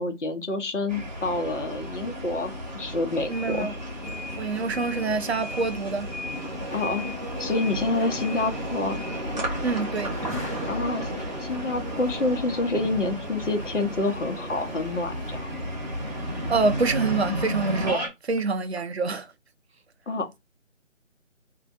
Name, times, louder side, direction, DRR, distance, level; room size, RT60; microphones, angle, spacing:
voice 1, 0.0-3.7 6.7-7.1 7.4-9.0 10.7-15.5 20.1-20.4, left 2 dB, 65° left, 0.9 m, -28 dB
sound 1, 0.9-18.1, equal, 35° right, 1.0 m, -33 dB
voice 2, 3.3-3.7 4.4-6.1 9.6-10.1 16.5-19.3, right 4 dB, 55° right, 0.5 m, -26 dB
sound 2, 4.0-17.2, right 1 dB, 10° right, 0.8 m, -43 dB
sound 3, 12.5-17.1, left 2 dB, 35° left, 1.1 m, -49 dB
2.5 x 2.1 x 2.5 m
figure-of-eight pair, 160°, 39 cm